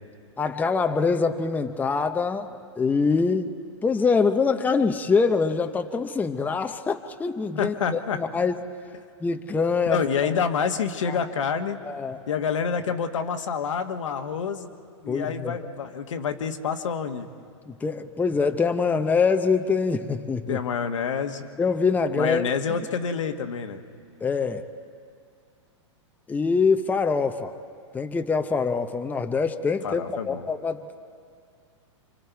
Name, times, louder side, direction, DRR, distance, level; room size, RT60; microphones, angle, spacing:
voice 1, 0.4-3.5 3.8-8.6 9.2-10.3 11.1-11.2 11.8-12.2 15.1-15.6 17.7-20.6 21.6-22.5 24.2-24.6 26.3-27.5 27.9-30.8, left 4 dB, 10° left, 7 dB, 0.7 m, -24 dB
voice 2, 7.5-8.2 9.9-11.8 12.3-14.7 15.0-17.3 20.5-21.5 22.1-23.8 29.8-30.5, left 6 dB, 80° left, 6 dB, 1.4 m, -27 dB
29.0 x 25.5 x 4.6 m, 2.3 s
hypercardioid pair, 120°, 16 cm